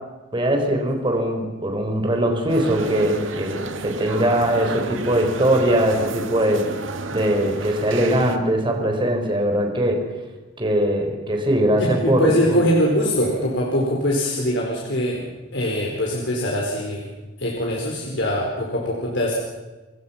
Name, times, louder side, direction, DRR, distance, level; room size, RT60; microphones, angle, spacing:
voice 1, 0.3-6.7 7.1-10.0 10.6-12.6, right 1 dB, 25° right, 3 dB, 4.3 m, -21 dB
sound 1, 2.5-8.4, right 3 dB, 90° right, 2.1 m, -32 dB
voice 2, 11.8-15.3 15.5-17.1 17.4-19.3, equal, 65° left, -1 dB, 4.6 m, -22 dB
29.5 x 24.0 x 5.8 m, 1.2 s
head